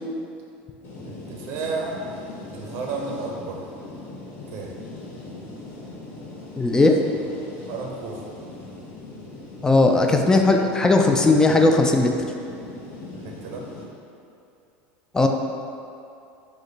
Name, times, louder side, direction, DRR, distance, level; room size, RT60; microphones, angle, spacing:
sound 1, 0.8-13.8, left 2 dB, 40° left, 0.8 m, -40 dB
voice 1, 1.0-2.0 2.5-3.7 4.5-4.8 7.6-8.4 10.3-10.5 13.1-13.7, right 4 dB, 50° right, 0 dB, 0.6 m, -32 dB
voice 2, 6.6-7.0 9.6-12.1 15.1-15.3, left 2 dB, 10° left, 3 dB, 0.3 m, -17 dB
4.9 x 2.2 x 3.9 m, 2.7 s
supercardioid pair, 115°, 6 cm